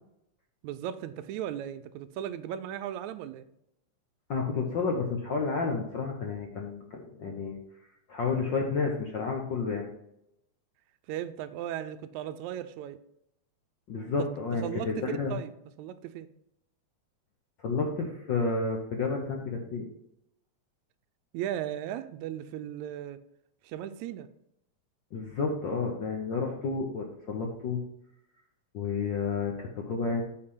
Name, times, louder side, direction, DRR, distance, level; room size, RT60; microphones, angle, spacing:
voice 1, 0.6-3.5 11.1-13.0 14.6-15.5 15.8-16.3 21.3-23.2 23.6-24.3, right 11 dB, 80° right, 12 dB, 1.9 m, -36 dB
voice 2, 4.3-7.5 8.1-9.9 13.9-15.3 17.6-19.8 25.1-27.8 28.7-30.2, left 4 dB, 65° left, 1 dB, 1.2 m, -31 dB
8.7 x 4.8 x 5.5 m, 0.77 s
omnidirectional pair, 3.4 m